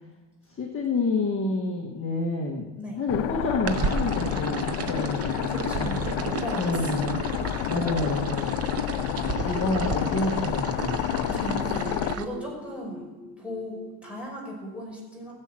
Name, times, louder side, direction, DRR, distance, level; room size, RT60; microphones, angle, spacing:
voice 1, 0.5-2.7 2.9-4.6 4.9-6.0 6.5-7.2 7.7-8.9 9.2-11.3, left 3 dB, 25° left, 0 dB, 1.4 m, -29 dB
sound 1, 3.1-12.1, left 14 dB, 75° left, 0.6 m, -29 dB
sound 2, 3.7-12.2, right 5 dB, 30° right, 0.7 m, -33 dB
voice 2, 4.3-4.7 5.5-7.1 11.3-13.1 13.4-15.3, equal, ahead, -4 dB, 5.3 m, -37 dB
sound 3, 11.7-14.1, equal, 55° right, 6.2 m, -46 dB
17.0 x 7.4 x 7.6 m, 1.2 s
cardioid pair, 170°, 49 cm